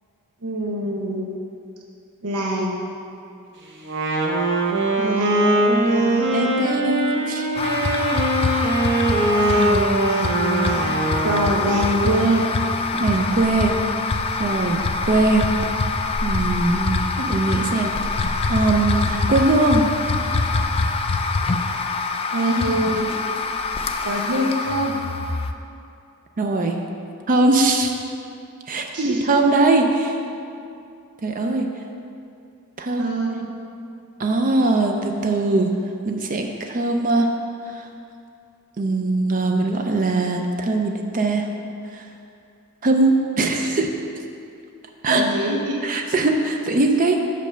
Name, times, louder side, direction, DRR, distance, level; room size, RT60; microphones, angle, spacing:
voice 1, 0.4-1.3 2.2-2.8 5.0-6.6 9.3-10.9 11.2-12.5 22.3-23.1 24.0-25.0 28.9-29.2 33.0-33.5 45.1-45.8, right 1 dB, 85° right, -1 dB, 0.8 m, -24 dB
Wind instrument woodwind instrument, 3.8-11.8, right 2 dB, 55° right, 0.9 m, -21 dB
voice 2, 6.3-7.5 13.0-13.7 14.4-15.5 16.2-17.9 18.5-19.9 26.4-26.8 27.3-27.9 28.7-30.2 31.2-31.7 32.8-33.1 34.2-35.7 36.1-37.3 37.7-37.9 38.8-41.5 41.9-42.0 42.8-43.9 45.0-45.3 45.8-47.2, right 2 dB, 40° right, 3 dB, 0.5 m, -21 dB
sound 1, 7.6-25.5, left 3 dB, 25° left, 0.3 m, -24 dB
5.5 x 5.2 x 6.5 m, 2.5 s
head